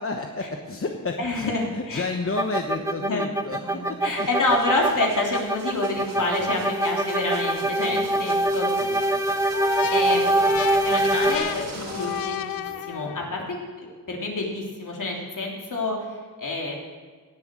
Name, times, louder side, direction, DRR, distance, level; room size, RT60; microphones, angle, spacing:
voice 1, 0.0-4.3 6.1-6.8 7.6-8.5 8.8-9.4 13.0-13.5, left 3 dB, 40° left, 4 dB, 1.0 m, -33 dB
voice 2, 1.2-2.0 3.0-3.2 3.6-8.7 9.9-10.3 10.8-12.4 12.9-13.4 13.8-16.7, left 2 dB, 60° left, -1 dB, 3.2 m, -28 dB
sound 1, 2.4-11.4, right 1 dB, 10° right, 0.7 m, -24 dB
sound 2, 4.1-12.8, right 2 dB, 65° right, 4.3 m, -41 dB
sound 3, 9.5-13.4, left 11 dB, 80° left, 0.5 m, -32 dB
18.0 x 7.1 x 6.3 m, 1.5 s
cardioid pair, 65°, 35 cm